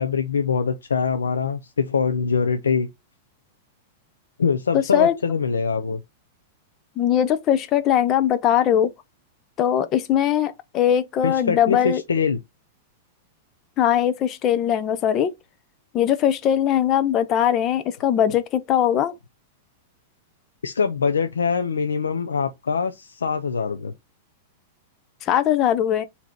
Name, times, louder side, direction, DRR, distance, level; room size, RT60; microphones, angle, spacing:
voice 1, 0.0-2.9 4.4-6.0 11.2-12.4 20.6-23.9, left 5 dB, 90° left, 0.5 m, -23 dB
voice 2, 4.7-5.1 7.0-8.9 9.6-12.0 13.8-15.3 15.9-19.1 25.2-26.0, left 10 dB, 35° left, 0.6 m, -20 dB
4.1 x 2.8 x 4.5 m
hypercardioid pair, 110°, 0 cm